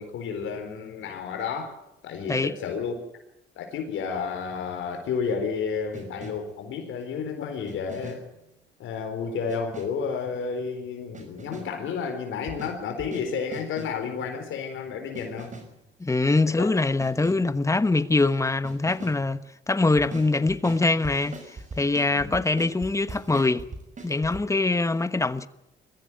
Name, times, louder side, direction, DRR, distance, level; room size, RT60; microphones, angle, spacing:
voice 1, 0.0-1.8 2.0-3.0 3.6-8.2 8.8-15.5 16.6-16.7 22.1-22.4, left 6 dB, 80° left, 4.4 m, -31 dB
sound 1, 5.9-6.6 7.6-8.4 9.5-10.1 11.1-11.9 12.5-14.1 15.1-15.8 17.0-17.6 18.6-19.3 20.0-24.4, right 3 dB, 40° right, 5.8 m, -42 dB
voice 2, 16.0-19.4 19.7-21.4 21.8-23.7 24.0-25.5, left 3 dB, 15° left, 1.2 m, -23 dB
22.0 x 15.0 x 9.3 m
cardioid pair, 90°, 20 cm